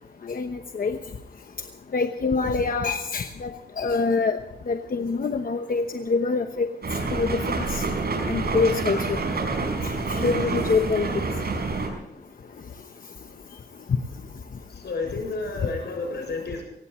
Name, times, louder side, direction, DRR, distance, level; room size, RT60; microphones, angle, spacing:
voice 1, 0.3-1.0 1.9-4.4 4.7-6.7 7.1-7.8 8.3-9.2 10.1-11.1, left 4 dB, 55° left, 6 dB, 1.0 m, -25 dB
sound 1, 6.8-11.9, right 3 dB, 70° right, 5.4 m, -27 dB
voice 2, 14.7-16.6, left 3 dB, 90° left, 2 dB, 7.2 m, -31 dB
23.0 x 18.5 x 3.2 m, 0.86 s
wide cardioid pair, 130°, 17 cm